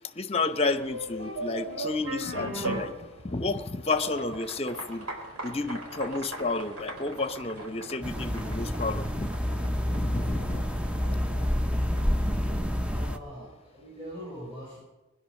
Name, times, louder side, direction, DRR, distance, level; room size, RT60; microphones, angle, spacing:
voice 1, 0.1-3.0 3.2-5.1 5.4-9.3 9.9-10.6, left 3 dB, 25° left, 11 dB, 0.8 m, -31 dB
sound 1, 0.7-13.4, right 1 dB, 85° right, 4.4 m, -39 dB
sound 2, 8.0-13.2, equal, 5° right, 0.5 m, -28 dB
voice 2, 10.9-11.2 12.8-14.8, equal, 25° right, -6 dB, 6.6 m, -43 dB
20.5 x 10.5 x 6.5 m, 1.1 s
head